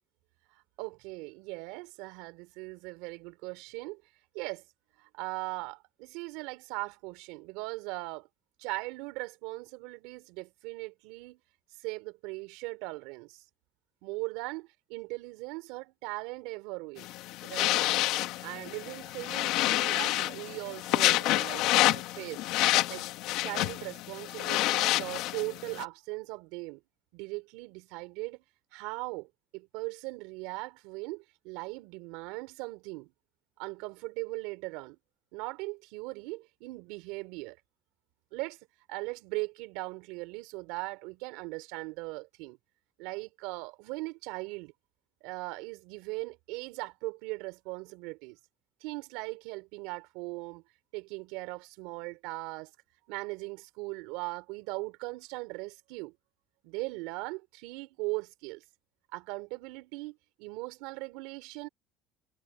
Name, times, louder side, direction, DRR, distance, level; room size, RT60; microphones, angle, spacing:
voice 1, 0.5-4.0 4.3-4.6 5.0-8.3 8.6-11.4 11.8-13.4 14.0-17.1 17.4-17.9 18.4-22.5 22.9-23.1 23.4-26.8 27.1-28.4 28.7-33.1 33.6-35.0 35.3-37.6 38.3-38.6 38.9-42.6 43.0-44.7 45.2-48.4 48.8-50.6 50.9-52.7 53.1-56.1 56.6-58.6 59.1-61.7, right 24 dB, 85° right, 4.3 m, -39 dB
sound 1, 17.0-25.8, left 17 dB, 75° left, 2.5 m, -28 dB
cardioid pair, 130°, 0 cm